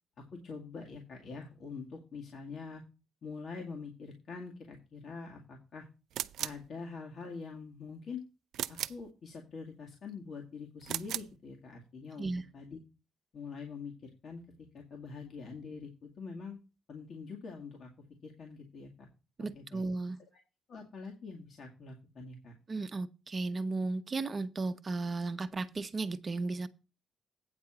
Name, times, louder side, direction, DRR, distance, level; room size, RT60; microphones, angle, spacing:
voice 1, 0.2-2.8 3.2-5.9 6.4-8.2 8.7-12.8 13.3-16.6 16.9-17.9 18.2-19.1 19.5-19.8 20.3-20.4 20.7-22.5, left 4 dB, 60° left, 2.1 m, -45 dB
sound 1, 6.1-6.7 8.5-9.1 10.8-11.4, right 12 dB, 80° right, 0.4 m, -37 dB
voice 2, 19.4-20.2 22.7-26.7, right 3 dB, 35° right, 0.9 m, -35 dB
9.0 x 4.5 x 7.5 m
cardioid pair, 90°, 0 cm